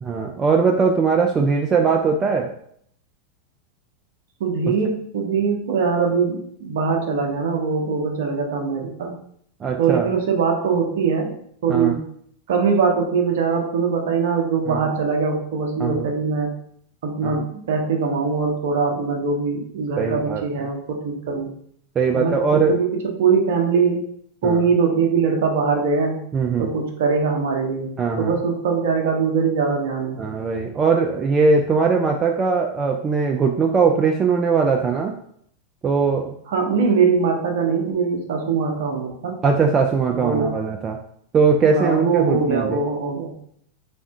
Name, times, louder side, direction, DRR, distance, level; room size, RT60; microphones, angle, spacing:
voice 1, 0.0-2.5 9.6-10.1 11.7-12.0 14.7-14.9 15.8-16.1 17.2-17.4 20.0-20.4 22.0-22.8 24.4-24.6 26.3-26.7 28.0-28.3 30.2-35.2 35.8-36.3 39.4-41.0 41.3-42.8, right 5 dB, 25° right, 2 dB, 0.3 m, -20 dB
voice 2, 4.4-9.1 9.8-11.3 11.6-12.0 12.5-16.5 17.0-21.5 22.1-24.0 24.4-26.2 26.6-27.9 28.2-30.2 36.5-39.4 40.1-40.6 41.6-43.3, right 5 dB, 55° right, 2 dB, 0.7 m, -22 dB
3.5 x 2.6 x 3.3 m, 0.65 s
figure-of-eight pair, 90°, 0 cm